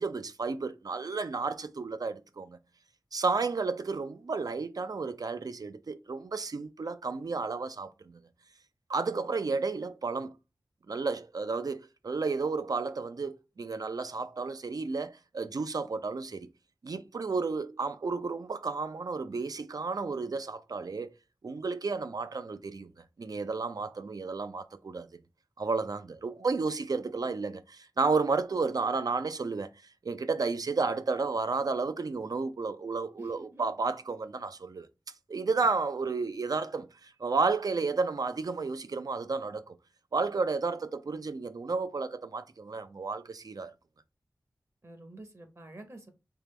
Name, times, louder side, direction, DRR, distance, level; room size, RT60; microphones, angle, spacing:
voice 1, 0.0-2.6 3.1-8.2 8.9-10.4 10.9-16.5 16.8-21.1 21.4-22.9 23.2-25.1 25.6-29.7 30.0-34.9 35.3-39.8 40.1-43.7, right 4 dB, 65° right, 0.5 m, -32 dB
voice 2, 33.2-33.7 35.6-35.7 44.8-46.1, right 1 dB, 45° right, 0.9 m, -48 dB
3.7 x 2.9 x 3.2 m
wide cardioid pair, 65°, 7 cm